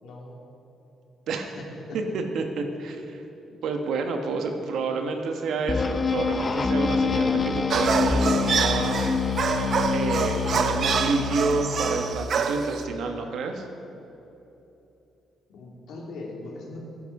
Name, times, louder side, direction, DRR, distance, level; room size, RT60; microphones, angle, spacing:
voice 1, 0.0-0.4 1.5-2.0 15.5-16.8, left 2 dB, 75° left, -2 dB, 2.9 m, -40 dB
voice 2, 2.1-3.2 3.6-9.0 9.5-9.7 9.9-13.7, right 4 dB, 75° right, 4 dB, 1.3 m, -29 dB
sound 1, 5.7-12.2, left 5 dB, 35° left, 0.7 m, -26 dB
sound 2, 7.7-12.8, right 6 dB, 55° right, 0.7 m, -26 dB
15.0 x 10.0 x 4.9 m, 3.0 s
cardioid pair, 90°, 0 cm